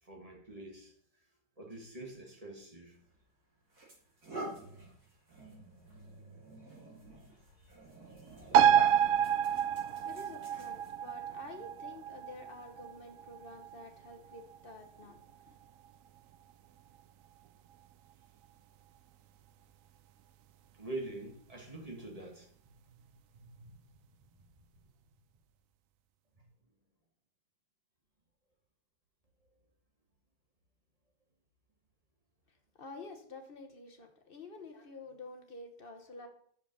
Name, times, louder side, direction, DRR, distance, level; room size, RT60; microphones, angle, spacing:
voice 1, 0.0-0.9 1.6-3.0 20.7-22.5 23.0-23.8 24.4-24.5 26.4-26.5, right 2 dB, 20° right, 1.5 m, -45 dB
sound 1, 3.0-3.1 3.7-11.1, right 1 dB, 55° right, 3.4 m, -47 dB
sound 2, 8.5-15.5 15.8-15.9, right 9 dB, 80° right, 0.7 m, -29 dB
voice 2, 10.0-15.6 32.5-36.3, left 3 dB, 40° left, 1.0 m, -49 dB
6.9 x 5.2 x 6.6 m
omnidirectional pair, 1.9 m